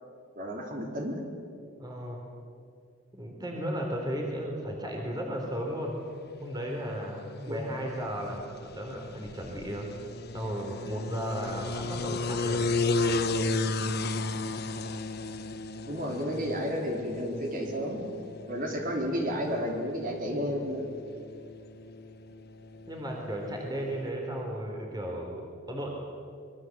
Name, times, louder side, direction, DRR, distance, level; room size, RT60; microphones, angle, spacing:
voice 1, 0.4-1.2 7.5-7.8 15.9-18.0 18.5-20.9, equal, 45° right, 1 dB, 4.1 m, -32 dB
voice 2, 1.8-2.2 3.1-6.0 6.4-9.9 10.3-12.7 22.9-25.9, equal, 20° right, 0 dB, 3.4 m, -35 dB
sound 1, 6.0-24.1, left 3 dB, 55° left, 1.3 m, -35 dB
25.0 x 22.0 x 7.8 m, 2.3 s
head